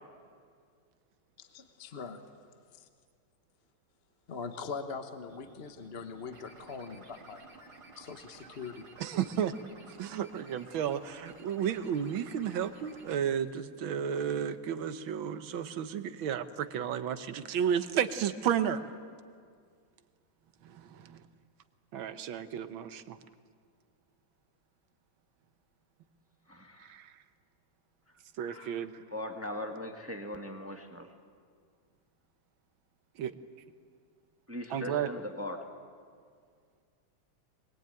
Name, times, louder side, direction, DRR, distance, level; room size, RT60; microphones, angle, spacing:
voice 1, 1.4-2.3 2.7-2.9 4.3-7.5 8.0-8.9, left 5 dB, 35° left, 7 dB, 1.2 m, -42 dB
sound 1, 5.2-13.2, right 3 dB, 55° right, 3.3 m, -54 dB
voice 2, 9.0-9.6 10.0-18.9 20.6-21.2 21.9-23.2 26.8-27.1 28.4-28.9 33.2-33.3 34.7-35.1, right 8 dB, 85° right, 11 dB, 1.8 m, -32 dB
voice 3, 26.5-26.9 28.5-28.8 29.1-31.1 34.5-35.7, left 1 dB, 10° right, 4 dB, 1.5 m, -40 dB
23.5 x 22.0 x 9.0 m, 2.1 s
omnidirectional pair, 2.1 m